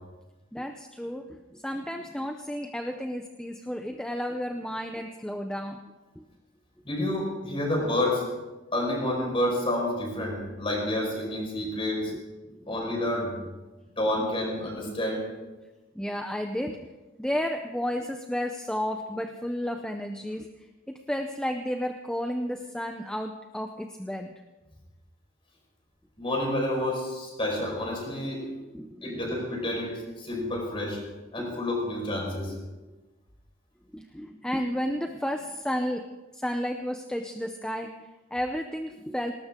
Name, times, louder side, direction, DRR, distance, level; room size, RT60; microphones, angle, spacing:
voice 1, 0.5-5.8 6.2-6.3 12.0-12.2 12.5-12.8 15.9-16.9 17.2-24.3 28.7-29.3 31.4-31.6 33.9-36.1 36.3-39.3, equal, 5° left, 5 dB, 0.6 m, -32 dB
voice 2, 6.8-8.2 8.7-12.1 12.7-13.3 14.0-15.2 26.2-28.5 29.0-31.0 31.3-32.5, left 1 dB, 25° left, 0 dB, 5.0 m, -29 dB
19.0 x 19.0 x 3.7 m, 1.2 s
head